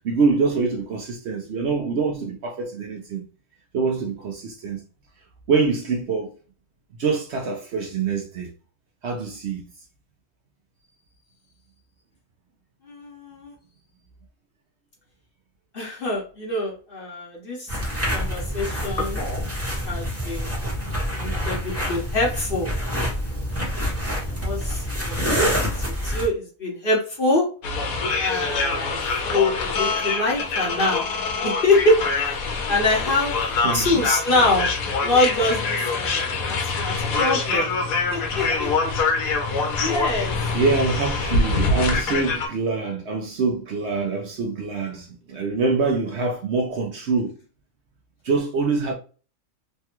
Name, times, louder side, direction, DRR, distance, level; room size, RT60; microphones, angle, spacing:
voice 1, 0.0-3.2 3.7-4.8 5.5-6.3 7.0-8.5 9.0-9.6 33.6-34.0 40.5-47.3 48.2-48.9, right 4 dB, 60° right, 0.8 m, -25 dB
voice 2, 12.9-13.5 15.7-17.7 18.1-19.2 19.8-20.5 21.2-22.7 24.3-25.1 25.4-27.5 28.2-29.0 29.2-31.1 31.4-32.4 32.7-33.3 33.7-34.7 35.0-37.7 38.1-38.9 39.8-40.3, left 2 dB, 45° left, 0.9 m, -24 dB
sound 1, 17.7-26.3, equal, 10° right, 0.9 m, -26 dB
sound 2, 27.6-42.5, left 3 dB, 80° left, 1.2 m, -25 dB
3.3 x 2.2 x 2.8 m
omnidirectional pair, 1.5 m